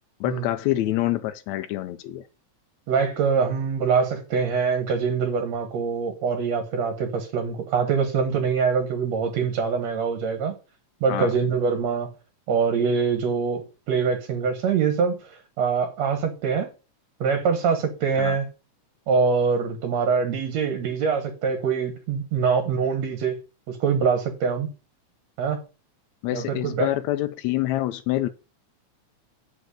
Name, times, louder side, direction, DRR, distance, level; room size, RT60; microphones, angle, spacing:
voice 1, 0.2-2.2 11.1-11.3 18.1-18.4 26.2-28.3, left 15 dB, 80° left, 1.8 m, -26 dB
voice 2, 2.9-10.5 11.0-12.1 12.5-16.7 17.2-18.4 19.1-23.3 23.7-24.7 25.4-25.6 26.3-26.9, right 5 dB, 65° right, 2.4 m, -24 dB
8.1 x 5.4 x 6.4 m
omnidirectional pair, 3.4 m